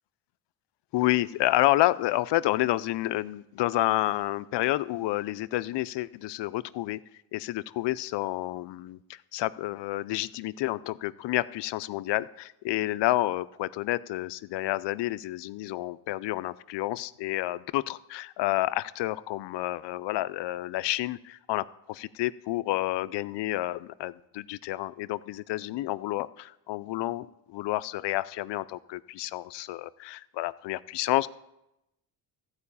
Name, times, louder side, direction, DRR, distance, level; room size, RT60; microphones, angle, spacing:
voice 1, 0.9-7.0 7.3-31.3, left 17 dB, 65° left, 17 dB, 0.5 m, -29 dB
14.0 x 4.8 x 8.4 m, 0.88 s
cardioid pair, 105°, 47 cm